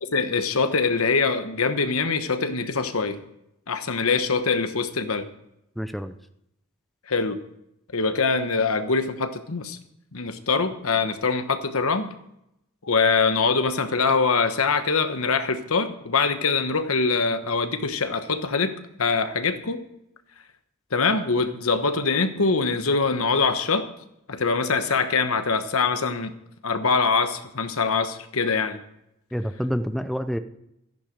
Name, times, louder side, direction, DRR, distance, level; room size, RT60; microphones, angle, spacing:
voice 1, 0.0-3.2 3.7-5.3 7.1-7.4 7.9-9.8 10.1-12.1 12.8-19.8 20.9-23.9 24.3-26.3 26.6-28.8, left 4 dB, 70° left, 9 dB, 1.1 m, -23 dB
voice 2, 5.8-6.1 29.3-30.4, equal, ahead, 10 dB, 0.5 m, -27 dB
13.5 x 10.5 x 5.2 m, 0.81 s
head